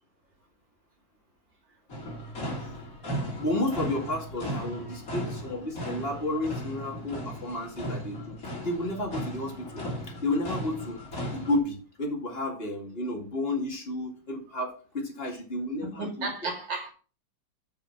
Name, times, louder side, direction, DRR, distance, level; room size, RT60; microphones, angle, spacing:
sound 1, 1.9-11.6, equal, 45° left, 3.6 m, -36 dB
voice 1, 3.2-8.3 8.6-11.0 11.3-16.3, left 1 dB, 30° left, 2.3 m, -32 dB
voice 2, 15.8-16.9, right 3 dB, 75° right, 3.1 m, -33 dB
6.9 x 5.8 x 5.9 m
omnidirectional pair, 2.0 m